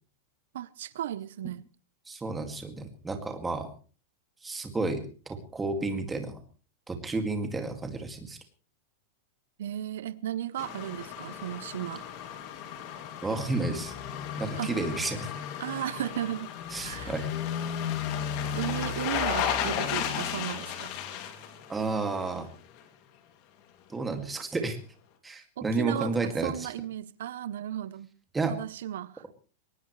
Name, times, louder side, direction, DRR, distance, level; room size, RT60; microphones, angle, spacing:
voice 1, 0.5-1.7 9.6-12.1 14.6-14.8 15.6-16.5 16.8-17.1 18.6-21.0 25.6-28.1 28.5-29.3, right 11 dB, 75° right, 0.7 m, -35 dB
voice 2, 2.1-3.7 4.4-6.4 6.9-8.4 13.2-13.9 14.4-15.3 16.7-17.4 21.7-22.5 23.9-24.8 25.2-26.7 28.3-28.5, right 3 dB, 10° right, 2.2 m, -31 dB
sound 1, 10.6-22.5 22.8-22.9, left 8 dB, 35° left, 2.5 m, -34 dB
22.0 x 19.5 x 3.2 m
supercardioid pair, 175°, 0 cm